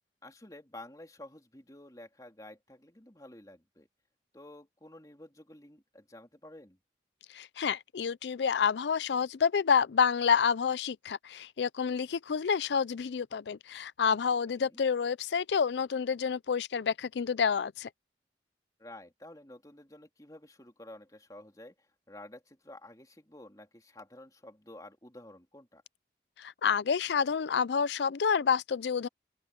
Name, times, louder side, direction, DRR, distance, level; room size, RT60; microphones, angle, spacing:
voice 1, 0.2-3.9 4.3-6.8 14.5-14.8 18.8-25.8, left 1 dB, 20° left, 3.3 m, -51 dB
voice 2, 7.3-17.9 26.4-29.1, left 6 dB, 80° left, 0.4 m, -28 dB
open air
head